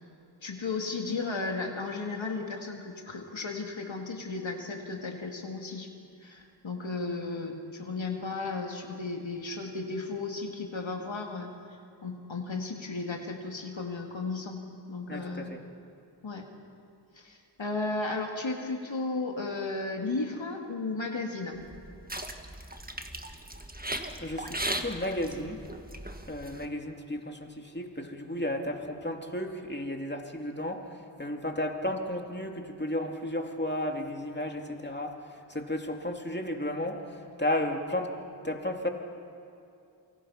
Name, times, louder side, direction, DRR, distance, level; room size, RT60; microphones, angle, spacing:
voice 1, 0.4-5.9 6.2-11.5 12.0-14.6 14.9-15.5 16.2-16.4 17.1-21.6, left 3 dB, 80° left, 2 dB, 2.2 m, -34 dB
voice 2, 15.1-15.6 24.2-25.6 26.3-38.1 38.4-38.9, left 1 dB, 25° left, 2 dB, 2.6 m, -33 dB
sound 1, 21.6-26.7, right 1 dB, 20° right, 1.6 m, -38 dB
28.5 x 24.0 x 5.7 m, 2.6 s
wide cardioid pair, 45°, 45 cm